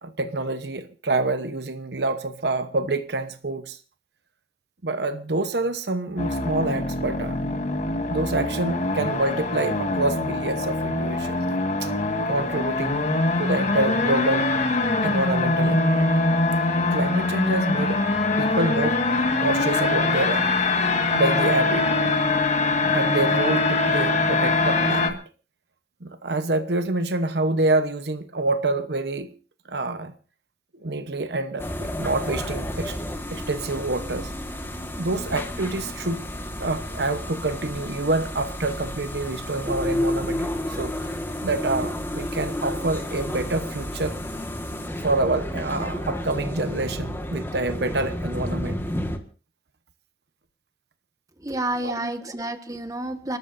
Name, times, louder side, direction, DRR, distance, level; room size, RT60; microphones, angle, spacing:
voice 1, 0.0-3.8 4.8-7.4 8.1-11.5 11.8-11.9 12.3-13.1 13.4-14.5 15.0-16.1 16.9-18.0 18.4-19.0 19.4-20.5 21.1-21.9 22.9-25.2 26.0-29.3 29.7-30.1 30.8-34.3 35.0-36.2 36.6-41.1 41.4-44.1 45.0-48.8 51.8-52.1, right 2 dB, 65° right, 1.0 m, -27 dB
sound 1, 6.2-25.1, left 2 dB, 40° left, 1.7 m, -23 dB
sound 2, 31.6-49.2, left 1 dB, 15° left, 1.7 m, -31 dB
voice 2, 51.4-53.4, right 1 dB, 20° right, 1.5 m, -29 dB
29.5 x 13.0 x 2.7 m
head